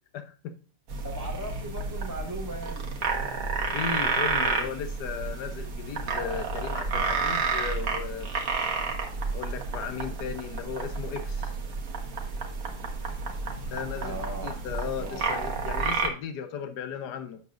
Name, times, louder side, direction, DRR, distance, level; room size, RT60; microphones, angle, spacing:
voice 1, 0.1-0.6 3.7-8.3 9.3-11.6 13.7-17.4, left 7 dB, 70° left, 9 dB, 1.4 m, -36 dB
sound 1, 0.9-16.1, right 4 dB, 55° right, 1.6 m, -31 dB
voice 2, 1.0-2.8 14.0-14.5 15.0-15.2, right 1 dB, 15° right, -2 dB, 1.1 m, -37 dB
8.2 x 7.6 x 2.5 m, 0.36 s
omnidirectional pair, 1.8 m